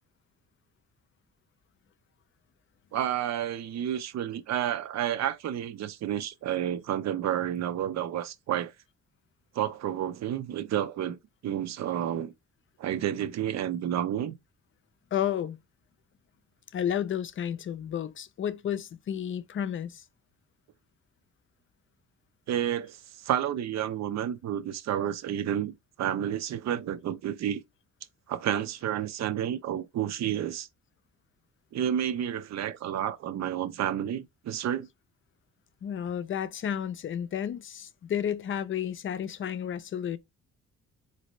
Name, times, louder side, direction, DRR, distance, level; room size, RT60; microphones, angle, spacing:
voice 1, 2.9-8.7 9.5-11.2 11.4-12.3 12.8-14.4 22.5-27.6 28.3-30.7 31.7-34.9, right 10 dB, 60° right, 0.6 m, -30 dB
voice 2, 15.1-15.6 16.7-20.0 35.8-40.2, left 9 dB, 40° left, 0.5 m, -32 dB
4.1 x 2.7 x 3.1 m
cardioid pair, 90°, 30 cm